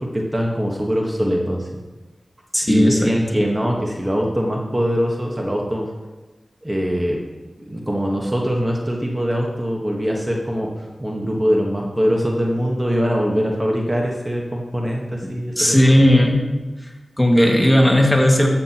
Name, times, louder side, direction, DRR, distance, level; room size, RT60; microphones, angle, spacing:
voice 1, 0.0-1.7 2.7-5.9 6.6-7.2 7.7-10.7 11.0-15.9 17.3-17.7, equal, 20° right, -1 dB, 1.4 m, -22 dB
voice 2, 2.5-3.1 15.6-16.4 17.2-18.5, left 1 dB, 10° left, 0 dB, 2.0 m, -15 dB
13.5 x 7.7 x 3.0 m, 1.2 s
cardioid pair, 45°, 0 cm